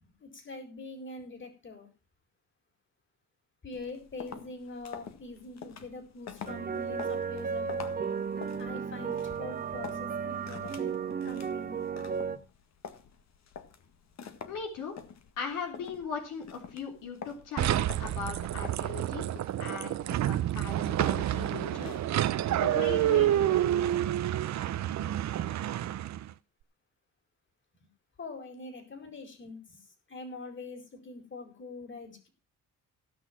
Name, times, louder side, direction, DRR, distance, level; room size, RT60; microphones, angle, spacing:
voice 1, 0.0-1.9 3.6-7.8 8.6-11.0 11.2-11.9 28.2-29.8 30.1-32.3, left 3 dB, 40° left, 6 dB, 4.4 m, -44 dB
sound 1, 3.7-22.2, left 7 dB, 60° left, 1.8 m, -47 dB
sound 2, 6.5-12.4, right 6 dB, 30° right, 1.5 m, -34 dB
voice 2, 14.5-15.0 15.4-19.3 19.6-20.0 20.2-22.0 22.6-23.7, left 5 dB, 85° left, 2 dB, 3.5 m, -39 dB
sound 3, 17.6-26.3, right 12 dB, 65° right, 0.8 m, -28 dB
16.0 x 6.5 x 6.0 m, 0.32 s
cardioid pair, 90°, 30 cm